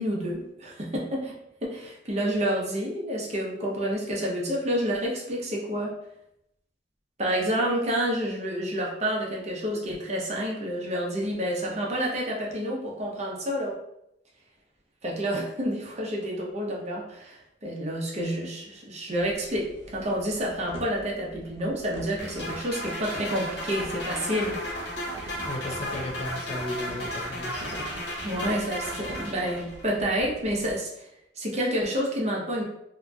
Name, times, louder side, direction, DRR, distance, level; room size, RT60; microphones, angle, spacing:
voice 1, 0.0-1.3 1.6-5.9 7.2-13.8 15.0-19.7 19.9-24.6 28.2-31.1 31.4-32.6, equal, 35° right, -2 dB, 0.6 m, -29 dB
sound 1, 19.2-30.8, equal, 75° right, 0.8 m, -45 dB
sound 2, 22.2-29.9, equal, 65° left, 0.7 m, -34 dB
voice 2, 25.4-27.9, left 2 dB, 35° left, 0 dB, 0.4 m, -35 dB
2.8 x 2.4 x 2.3 m, 0.79 s
head